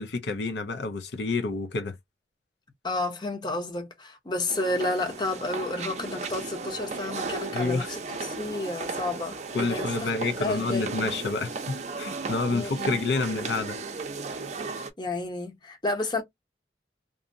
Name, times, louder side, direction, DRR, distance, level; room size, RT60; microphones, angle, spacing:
voice 1, 0.0-1.9 7.5-8.0 9.5-13.8, left 3 dB, 70° left, 0.5 m, -29 dB
voice 2, 2.8-11.0 12.5-13.1 15.0-16.2, left 2 dB, 25° left, 0.8 m, -31 dB
sound 1, 4.5-14.9, right 4 dB, 40° right, 0.5 m, -35 dB
2.6 x 2.6 x 2.5 m
head